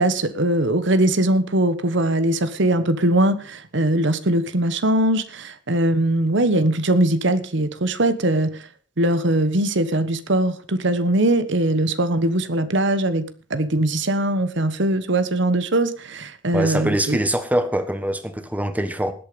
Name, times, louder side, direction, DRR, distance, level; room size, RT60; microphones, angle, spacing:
voice 1, 0.0-8.6 9.0-17.2, right 1 dB, 65° right, 1.3 m, -21 dB
voice 2, 16.5-19.1, right 1 dB, 10° right, 1.4 m, -23 dB
19.0 x 8.4 x 5.3 m
head